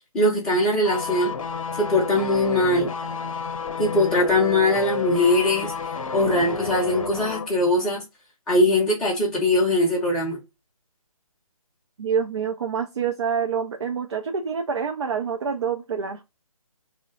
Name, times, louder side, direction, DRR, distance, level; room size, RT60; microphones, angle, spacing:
voice 1, 0.1-1.3 1.8-2.9 3.8-5.7 6.1-8.0 8.5-10.4, left 1 dB, 5° left, 0.5 m, -21 dB
sound 1, 0.8-7.5 7.8-7.9, left 5 dB, 65° left, 0.6 m, -31 dB
voice 2, 12.0-16.2, right 6 dB, 50° right, 0.4 m, -27 dB
2.8 x 2.0 x 3.7 m
figure-of-eight pair, 155°, 18 cm